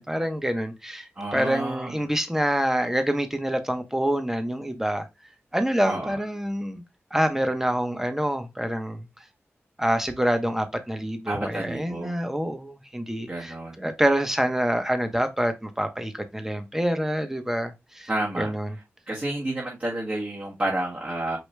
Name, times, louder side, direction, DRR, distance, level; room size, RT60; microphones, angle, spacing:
voice 1, 0.0-5.0 5.5-6.8 7.1-9.1 9.8-18.1 18.4-18.8, equal, 10° right, 1.1 m, -26 dB
voice 2, 1.2-2.0 5.9-6.2 11.3-12.2 13.3-13.8 18.1-18.5 19.1-21.4, right 1 dB, 35° right, 1.7 m, -30 dB
4.9 x 3.1 x 3.4 m
cardioid pair, 45°, 5 cm